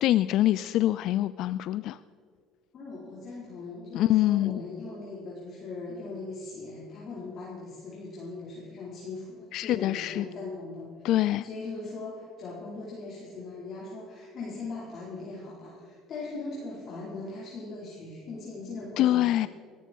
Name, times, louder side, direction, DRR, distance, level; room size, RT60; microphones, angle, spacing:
voice 1, 0.0-2.0 3.9-4.6 9.5-10.2 11.0-11.4 19.0-19.5, left 14 dB, 65° left, 15 dB, 0.3 m, -24 dB
voice 2, 2.7-10.9 11.1-19.2, left 3 dB, 45° left, -6 dB, 4.6 m, -40 dB
19.5 x 14.0 x 4.6 m, 2.2 s
cardioid pair, 115°, 0 cm